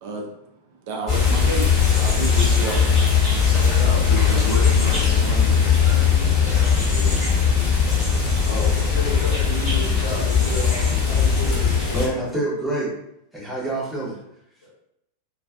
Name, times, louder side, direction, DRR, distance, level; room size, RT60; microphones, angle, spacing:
voice 1, 0.9-2.8 3.5-3.6, right 2 dB, 50° right, 1 dB, 0.4 m, -30 dB
sound 1, 1.1-12.1, left 6 dB, 25° left, 1.1 m, -19 dB
voice 2, 3.7-6.1 6.5-7.3 8.5-12.3, left 1 dB, 60° left, -6 dB, 0.9 m, -32 dB
voice 3, 11.9-13.0 13.3-14.2, right 1 dB, ahead, -6 dB, 0.8 m, -26 dB
2.4 x 2.3 x 2.3 m, 0.79 s
figure-of-eight pair, 90°, 0 cm